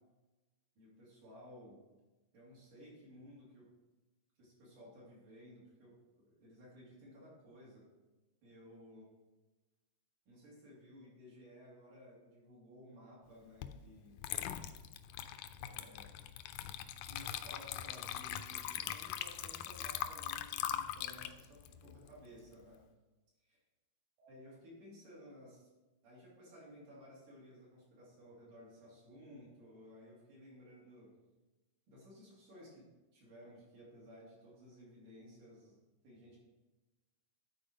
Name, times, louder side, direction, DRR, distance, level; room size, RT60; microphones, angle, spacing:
voice 1, 0.8-1.8 2.3-3.7 4.4-7.8 8.4-9.0 10.3-14.2 15.6-16.1 17.0-22.8 23.4-23.6 24.2-25.7 26.0-31.1 31.9-32.9 33.1-36.4, equal, 70° right, -7 dB, 4.3 m, -56 dB
Water / Liquid, 13.6-13.8 14.2-22.7, left 11 dB, 80° left, 2.0 m, -42 dB
10.0 x 4.5 x 5.1 m, 1.1 s
omnidirectional pair, 3.9 m